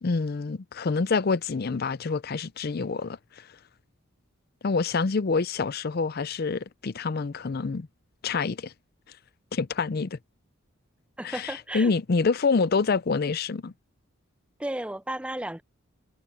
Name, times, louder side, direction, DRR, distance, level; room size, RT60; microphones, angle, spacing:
voice 1, 0.0-3.5 4.6-7.9 8.2-8.7 9.5-10.2 11.2-13.7, left 4 dB, 45° left, 0.5 m, -27 dB
voice 2, 11.2-11.9 14.6-15.6, right 1 dB, 5° right, 0.5 m, -33 dB
head